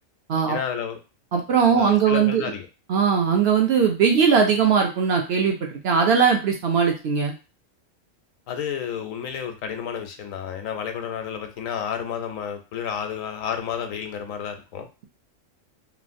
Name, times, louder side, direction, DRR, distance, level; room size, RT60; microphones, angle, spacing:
voice 1, 0.5-1.0 1.7-2.7 8.5-14.9, left 8 dB, 85° left, 6 dB, 1.0 m, -31 dB
voice 2, 1.3-2.4 2.9-7.3, right 6 dB, 60° right, 2 dB, 0.7 m, -20 dB
3.0 x 2.3 x 2.5 m, 0.31 s
omnidirectional pair, 1.3 m